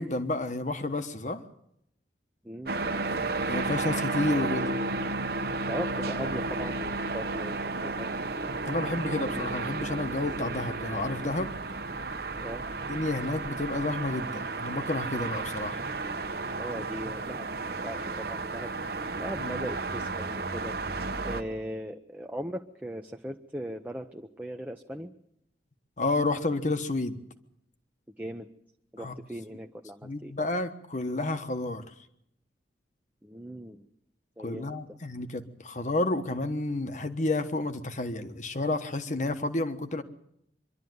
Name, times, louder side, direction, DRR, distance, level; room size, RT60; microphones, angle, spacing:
voice 1, 0.0-1.4 3.5-4.7 8.6-11.5 12.9-15.8 19.4-19.7 26.0-27.2 29.0-29.1 30.0-31.8 34.4-40.0, left 2 dB, 45° left, 9 dB, 1.3 m, -30 dB
sound 1, 2.7-21.4, right 3 dB, 60° right, 1.2 m, -33 dB
voice 2, 5.7-8.1 12.4-12.7 16.6-18.7 19.2-20.8 21.2-25.1 28.2-28.5 28.9-30.3 33.2-33.9 34.4-34.8, equal, 10° right, 3 dB, 0.7 m, -39 dB
24.0 x 12.0 x 9.4 m, 0.78 s
head